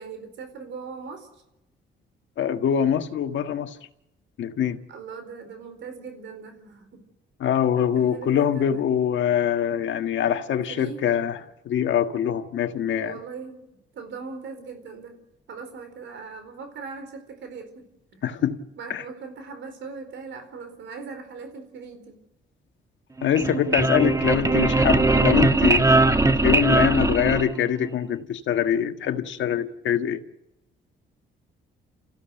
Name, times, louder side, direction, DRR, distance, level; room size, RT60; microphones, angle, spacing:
voice 1, 0.0-1.4 4.9-7.0 7.9-8.8 10.7-11.0 13.0-13.7 13.9-15.2 15.5-18.2 18.8-22.2, right 5 dB, 70° right, 4.6 m, -40 dB
voice 2, 2.4-3.8 4.4-4.8 7.4-11.4 11.6-13.1 18.2-18.6 18.9-19.0 23.2-25.9 26.4-30.2, left 9 dB, 70° left, 1.7 m, -24 dB
sound 1, 23.2-27.9, right 2 dB, 15° right, 1.5 m, -20 dB
30.0 x 15.5 x 7.9 m
cardioid pair, 90°, 20 cm